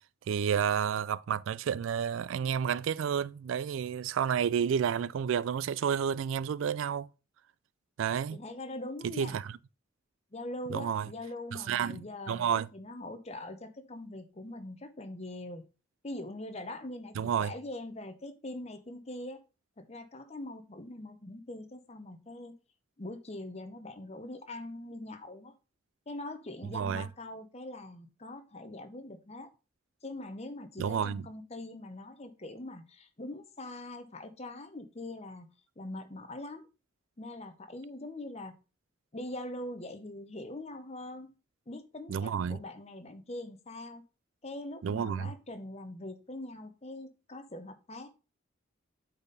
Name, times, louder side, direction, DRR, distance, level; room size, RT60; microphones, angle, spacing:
voice 1, 0.3-7.1 8.0-8.4 9.2-9.5 10.7-11.1 11.7-12.7 17.2-17.5 26.7-27.1 30.8-31.3 42.1-42.6 44.8-45.3, right 7 dB, 75° right, 0.3 m, -30 dB
voice 2, 8.3-9.4 10.3-15.6 16.0-19.4 19.8-22.5 23.0-25.5 26.1-29.5 30.0-35.5 35.8-36.7 37.2-38.5 39.1-41.3 41.7-44.0 44.4-48.2, left 1 dB, 30° left, 0.8 m, -42 dB
8.7 x 4.2 x 4.0 m
head